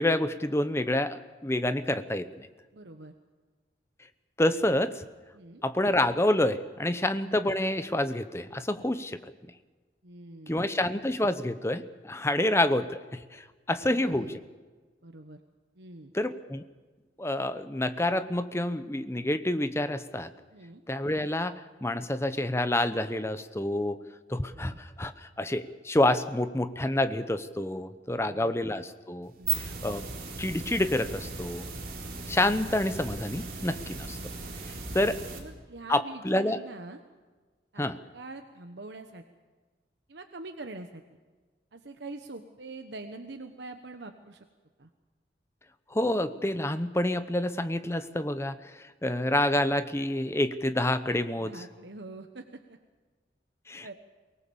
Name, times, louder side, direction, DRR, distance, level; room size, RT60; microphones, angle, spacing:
voice 1, 0.0-2.5 4.4-5.0 5.6-9.3 10.5-14.4 16.1-16.6 17.2-20.3 20.9-24.0 24.3-29.3 29.8-30.1 30.4-31.7 32.3-34.2 34.9-35.2 35.9-36.6 37.8-38.0 45.9-51.6 53.7-53.9, left 1 dB, 15° left, 11 dB, 0.8 m, -28 dB
voice 2, 2.7-3.1 5.3-5.6 6.9-7.1 10.0-10.7 13.8-14.4 15.0-15.4 15.8-16.1 20.5-20.8 24.5-24.8 28.1-28.5 29.4-29.7 35.3-37.0 37.7-37.9 38.1-39.2 40.1-41.0 41.7-44.4 44.8-44.9 51.3-52.8 53.8-53.9, right 2 dB, 75° right, 6 dB, 1.1 m, -44 dB
sound 1, 29.2-35.4, right 5 dB, 55° right, 3.7 m, -37 dB
23.0 x 19.5 x 7.1 m, 1.4 s
head